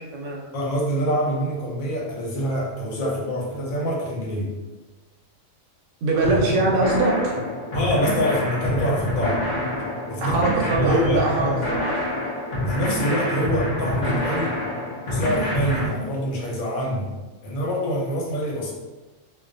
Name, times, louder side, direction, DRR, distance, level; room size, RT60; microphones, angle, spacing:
voice 1, 0.0-0.4 6.0-7.4 10.2-12.2, right 3 dB, 70° right, -2 dB, 0.9 m, -23 dB
voice 2, 0.5-4.5 7.7-9.5 10.1-10.4 10.8-11.6 12.6-14.6 15.1-17.1 17.4-18.7, equal, 90° left, -3 dB, 1.1 m, -25 dB
sound 1, 6.2-15.9, left 1 dB, 65° left, 0.4 m, -26 dB
2.3 x 2.1 x 2.5 m, 1.2 s
omnidirectional pair, 1.4 m